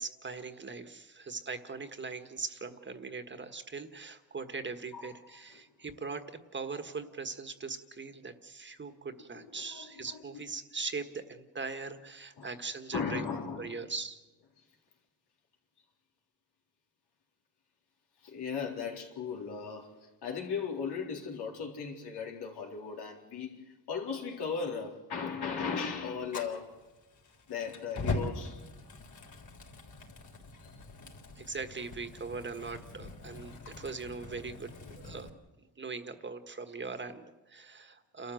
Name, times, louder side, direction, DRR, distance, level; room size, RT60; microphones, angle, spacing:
voice 1, 0.0-13.2 13.6-14.2 31.3-35.3 35.6-38.3, right 4 dB, 30° right, 1.5 m, -40 dB
voice 2, 9.4-10.2 12.4-12.5 12.9-13.7 18.2-26.8 27.5-28.6, left 6 dB, 90° left, 4.0 m, -37 dB
Fire, 26.3-35.3, left 2 dB, 50° left, 3.8 m, -42 dB
29.5 x 13.5 x 7.8 m
cardioid pair, 125°, 38 cm